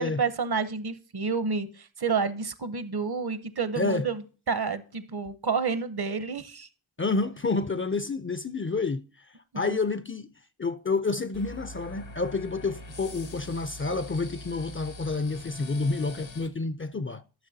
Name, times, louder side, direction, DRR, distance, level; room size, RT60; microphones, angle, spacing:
voice 1, 0.0-6.7 9.5-9.8, right 5 dB, 55° right, 0.8 m, -30 dB
voice 2, 3.8-4.1 7.0-9.0 9.6-10.3 10.6-17.2, left 3 dB, 30° left, 0.4 m, -29 dB
sound 1, 11.3-16.5, left 1 dB, 80° left, 1.2 m, -43 dB
12.0 x 6.1 x 2.7 m
wide cardioid pair, 45°, 45 cm